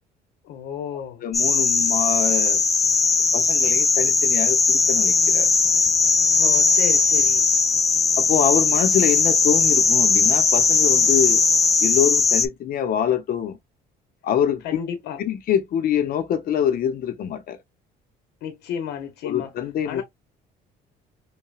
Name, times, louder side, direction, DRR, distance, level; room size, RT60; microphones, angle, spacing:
voice 1, 0.4-1.2 6.3-7.5 14.6-15.2 18.4-19.5 19.8-20.0, left 8 dB, 90° left, 0.9 m, -32 dB
voice 2, 1.2-2.6 3.3-5.5 8.2-11.4 11.8-13.6 14.2-14.6 15.2-17.6 19.2-20.0, left 9 dB, 60° left, 0.7 m, -24 dB
sound 1, 1.3-12.5, left 4 dB, 20° left, 0.5 m, -19 dB
5.4 x 2.2 x 2.3 m
cardioid pair, 110°, 17 cm